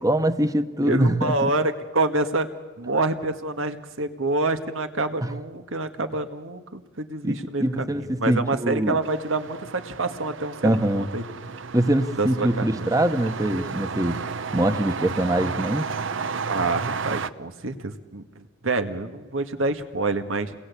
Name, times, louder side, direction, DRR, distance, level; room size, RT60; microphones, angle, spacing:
voice 1, 0.0-1.5 5.2-5.3 7.2-9.0 10.6-11.1 11.7-14.2 14.5-15.9, right 1 dB, 20° right, 10 dB, 1.2 m, -23 dB
voice 2, 0.8-2.5 2.8-7.9 8.2-11.2 12.2-12.9 16.5-20.5, right 2 dB, 85° right, 8 dB, 1.8 m, -27 dB
sound 1, 9.0-17.3, right 5 dB, 70° right, 0.8 m, -32 dB
29.5 x 21.0 x 8.5 m, 1.4 s
head